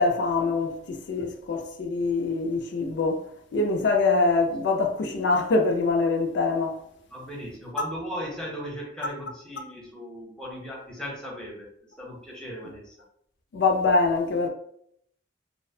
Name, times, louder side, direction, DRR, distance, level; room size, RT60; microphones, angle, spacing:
voice 1, 0.0-3.2 3.5-6.8 13.5-14.5, left 3 dB, 75° left, 0.4 m, -24 dB
voice 2, 7.1-11.7 12.0-13.0, equal, 5° left, 0.6 m, -37 dB
2.6 x 2.0 x 2.6 m
head